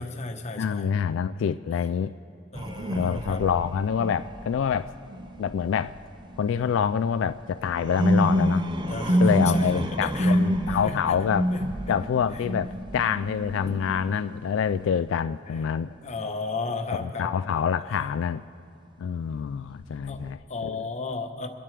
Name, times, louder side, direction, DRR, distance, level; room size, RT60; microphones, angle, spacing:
voice 1, 0.0-0.9 2.5-3.4 8.8-10.4 10.7-11.2 11.5-11.6 16.0-17.3 20.1-20.2 20.5-21.5, left 3 dB, 35° left, 4 dB, 1.0 m, -34 dB
voice 2, 0.6-2.1 2.9-4.9 5.4-6.0 6.4-8.7 9.2-11.5 11.9-15.9 17.0-18.4 19.0-20.9, left 7 dB, 85° left, 12 dB, 0.3 m, -26 dB
sound 1, 2.5-6.7 7.1-15.0 19.8-20.3, equal, 25° right, 0.6 m, -27 dB
25.0 x 11.0 x 3.3 m, 2.7 s
head